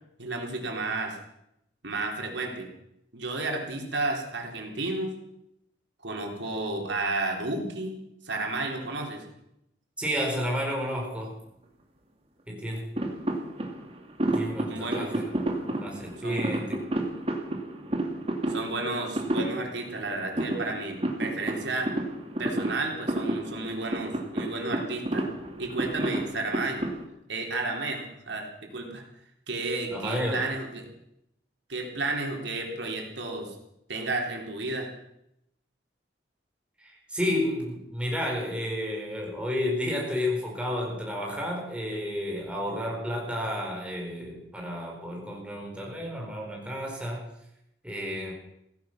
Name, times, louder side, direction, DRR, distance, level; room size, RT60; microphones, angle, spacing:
voice 1, 0.2-1.2 1.8-2.7 3.1-5.1 6.0-8.0 8.2-9.2 14.7-15.1 16.2-16.5 18.5-21.9 22.4-25.3 25.6-26.8 27.3-29.0 29.5-30.9 31.7-33.6 33.9-34.9, right 2 dB, 90° right, 1 dB, 3.8 m, -32 dB
voice 2, 10.0-11.3 12.5-12.9 14.3-16.8 29.9-30.4 36.8-47.3 47.8-48.3, equal, 5° right, -1 dB, 4.6 m, -31 dB
sound 1, 13.0-27.0, right 1 dB, 35° right, 2.3 m, -31 dB
16.0 x 15.0 x 6.0 m, 0.80 s
head